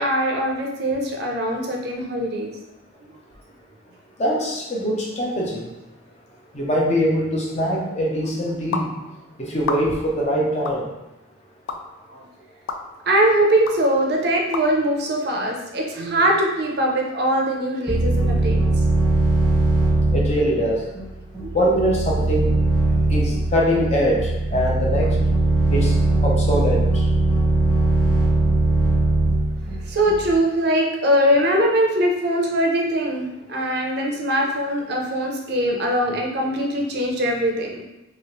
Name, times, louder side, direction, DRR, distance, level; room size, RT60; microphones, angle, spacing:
voice 1, 0.0-2.5 12.1-12.2 13.1-18.6 21.4-21.6 26.5-26.6 29.9-37.8, right 1 dB, 50° right, 0 dB, 0.5 m, -21 dB
voice 2, 4.2-5.7 6.5-8.9 9.4-10.9 20.1-20.8 21.5-22.5 23.1-25.2 25.7-25.9 26.2-27.0, equal, 35° left, -2 dB, 0.5 m, -22 dB
sound 1, 8.7-8.9 9.6-10.1 10.7-10.8 11.7-11.8 12.7-12.8 13.7-13.8 14.5-14.7, left 4 dB, 80° left, 0.3 m, -28 dB
sound 2, 17.9-30.4, right 2 dB, ahead, 0.9 m, -20 dB
3.0 x 2.8 x 2.9 m, 0.98 s
head